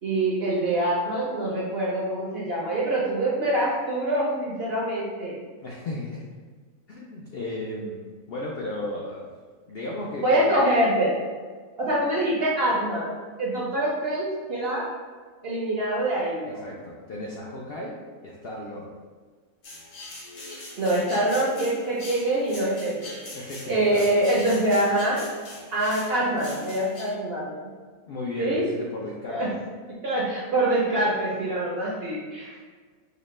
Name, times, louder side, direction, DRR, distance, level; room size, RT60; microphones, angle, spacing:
voice 1, 0.0-5.4 10.2-11.1 11.8-13.1 13.4-14.9 15.4-16.7 20.8-23.2 23.7-25.2 25.7-27.7 28.4-28.7 29.3-29.5 30.0-32.6, right 1 dB, 55° right, -5 dB, 0.7 m, -25 dB
voice 2, 5.6-6.3 6.9-9.3 9.7-10.6 16.4-18.0 18.2-18.9 23.3-24.0 28.1-29.5, left 1 dB, 75° left, -3 dB, 0.5 m, -35 dB
sound 1, 19.6-27.1, left 2 dB, 60° left, 1.2 m, -41 dB
4.9 x 2.1 x 3.1 m, 1.5 s
omnidirectional pair, 1.6 m